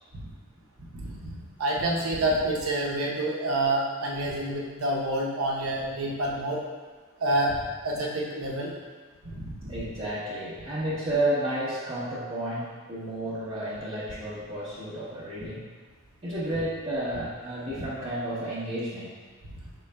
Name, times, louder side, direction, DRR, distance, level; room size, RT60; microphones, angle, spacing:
voice 1, 0.9-6.6 7.2-7.6 7.8-8.7 9.3-9.7 17.8-17.9, right 1 dB, 85° right, -2 dB, 0.8 m, -28 dB
voice 2, 9.7-15.6 16.2-19.2, right 1 dB, 30° right, -12 dB, 0.8 m, -31 dB
5.2 x 3.8 x 2.2 m, 1.4 s
head